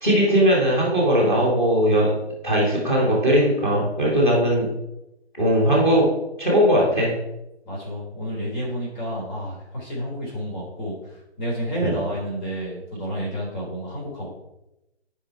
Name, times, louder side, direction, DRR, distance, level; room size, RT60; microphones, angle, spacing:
voice 1, 0.0-2.1 2.4-4.7 5.4-6.1 6.4-7.1 11.8-12.0, equal, 15° left, -3 dB, 1.8 m, -19 dB
voice 2, 7.6-14.3, equal, 45° left, -5 dB, 3.5 m, -30 dB
10.5 x 5.1 x 4.5 m, 0.90 s
hypercardioid pair, 165°, 33 cm